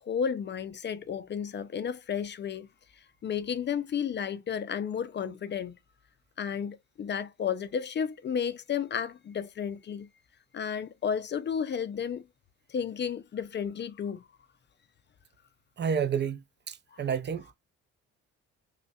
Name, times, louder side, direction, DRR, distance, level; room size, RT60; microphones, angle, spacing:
voice 1, 0.0-2.7 3.2-5.8 6.4-10.1 10.5-12.3 12.7-14.3 16.9-17.0, left 7 dB, 40° left, 0.4 m, -32 dB
voice 2, 15.8-17.6, right 7 dB, 35° right, 0.4 m, -30 dB
5.2 x 2.2 x 2.2 m
cardioid pair, 90°, 30 cm